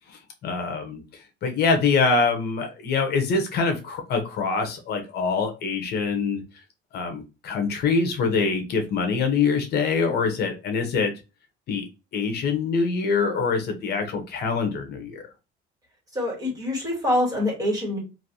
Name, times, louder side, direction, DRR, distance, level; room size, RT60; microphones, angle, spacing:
voice 1, 0.4-1.0 1.4-6.4 6.9-11.1 11.7-11.9 12.1-15.2, left 4 dB, 55° left, 5 dB, 0.8 m, -24 dB
voice 2, 16.1-18.0, left 1 dB, 20° right, -2 dB, 1.7 m, -25 dB
3.2 x 2.6 x 2.6 m, 0.28 s
cardioid pair, 155°, 20 cm